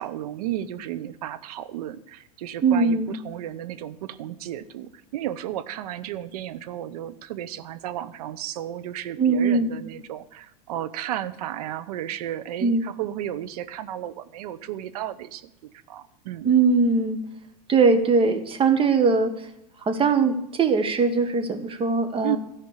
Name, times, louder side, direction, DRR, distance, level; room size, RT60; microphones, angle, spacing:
voice 1, 0.0-16.5 22.2-22.4, right 12 dB, 70° right, 13 dB, 0.8 m, -33 dB
voice 2, 2.6-3.1 9.2-9.8 12.6-12.9 16.4-17.2 17.7-19.5 19.8-22.4, right 4 dB, 25° right, 6 dB, 1.6 m, -21 dB
13.0 x 5.2 x 8.4 m, 0.80 s
hypercardioid pair, 100°, 20 cm